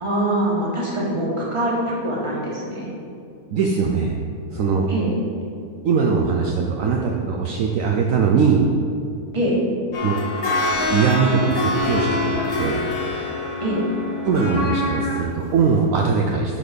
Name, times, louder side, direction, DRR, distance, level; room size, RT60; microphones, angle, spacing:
voice 1, 0.0-2.9 4.9-5.1 9.3-9.6 13.6-13.8, right 1 dB, 20° right, -4 dB, 1.5 m, -23 dB
voice 2, 3.5-4.1 4.5-4.9 5.8-8.6 10.0-10.2 10.9-12.8 14.2-16.6, right 5 dB, 65° right, 0 dB, 1.0 m, -21 dB
sound 1, 9.9-15.2 15.8-15.9, left 2 dB, 70° left, 1.7 m, -25 dB
10.0 x 4.1 x 5.1 m, 2.5 s
omnidirectional pair, 1.6 m